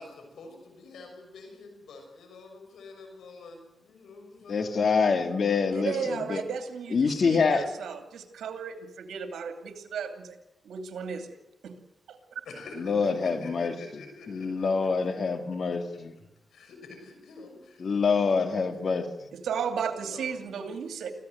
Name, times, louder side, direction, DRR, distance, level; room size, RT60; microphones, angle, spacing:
voice 1, 0.0-5.1 5.9-6.7 7.5-7.6 12.4-15.1 16.5-18.0 18.3-18.4 18.7-18.8 19.6-19.7 20.0-20.8, left 3 dB, 90° left, 4 dB, 6.3 m, -47 dB
voice 2, 4.5-6.4 6.9-7.6 12.8-16.1 17.8-19.1, left 5 dB, 60° left, 7 dB, 2.3 m, -26 dB
voice 3, 5.7-10.4 10.6-11.4 11.6-11.7 12.1-12.4 19.3-21.1, right 6 dB, 90° right, 6 dB, 2.6 m, -34 dB
25.0 x 15.5 x 7.9 m, 0.87 s
cardioid pair, 70°, 0 cm